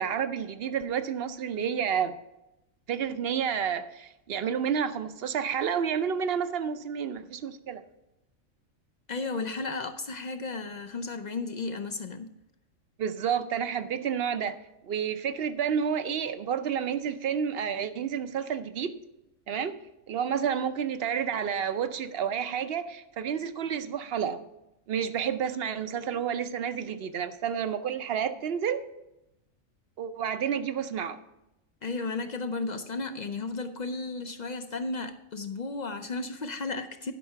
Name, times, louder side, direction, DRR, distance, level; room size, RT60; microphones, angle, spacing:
voice 1, 0.0-2.1 2.9-7.8 13.0-14.6 14.9-18.9 19.5-19.8 20.1-24.4 24.9-28.8 30.0-31.2, right 8 dB, 60° right, 11 dB, 0.7 m, -30 dB
voice 2, 9.1-12.3 31.8-37.1, left 3 dB, 60° left, 9 dB, 0.4 m, -34 dB
11.5 x 5.5 x 5.7 m, 0.90 s
omnidirectional pair, 1.4 m